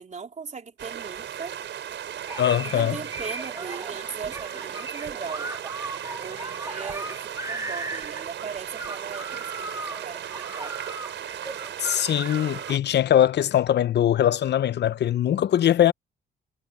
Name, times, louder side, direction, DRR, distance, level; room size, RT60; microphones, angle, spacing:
voice 1, 0.0-1.6 2.6-5.6 6.2-10.7, right 5 dB, 35° right, 3.7 m, -39 dB
sound 1, 0.8-12.8, right 10 dB, 65° right, 4.4 m, -36 dB
sound 2, 2.3-12.8, right 2 dB, 15° right, 1.7 m, -37 dB
voice 2, 2.4-3.0 11.8-15.9, left 11 dB, 60° left, 0.7 m, -21 dB
cardioid pair, 90°, 20 cm